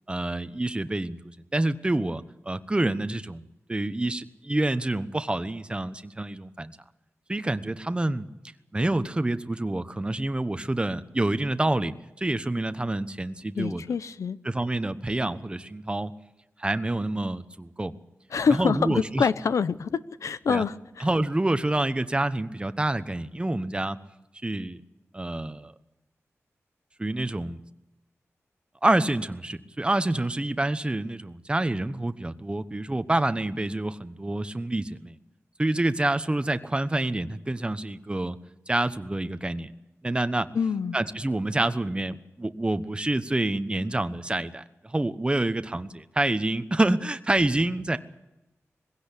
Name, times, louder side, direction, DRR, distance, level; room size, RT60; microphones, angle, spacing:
voice 1, 0.1-1.2 1.5-6.8 7.3-8.3 8.7-13.8 14.4-16.1 16.6-17.9 18.5-19.3 20.5-20.6 21.0-24.0 24.4-24.8 25.1-25.7 27.0-27.6 28.8-35.2 35.6-38.4 38.7-39.7 40.0-40.5 40.9-48.0, right 2 dB, 20° right, 11 dB, 1.1 m, -27 dB
voice 2, 13.6-14.4 18.3-21.1 40.5-41.0, left 5 dB, 90° left, 14 dB, 0.8 m, -26 dB
21.0 x 16.5 x 8.4 m, 0.93 s
wide cardioid pair, 90°, 5 cm